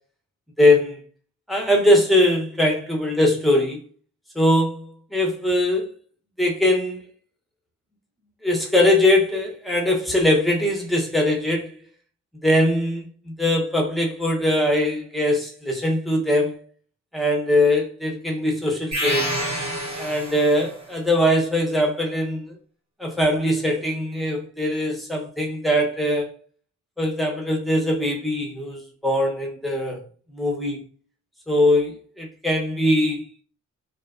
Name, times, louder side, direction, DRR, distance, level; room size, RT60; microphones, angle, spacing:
voice 1, 0.6-1.0 1.5-3.8 4.4-5.9 6.4-7.0 8.4-11.7 12.4-16.6 17.1-19.3 20.0-22.5 23.0-26.3 27.0-30.0 30.3-30.8 31.5-33.2, left 1 dB, ahead, 0.6 m, -21 dB
sound 1, 18.9-20.8, equal, 60° right, 0.9 m, -28 dB
2.6 x 2.2 x 2.3 m
cardioid pair, 95°, 32 cm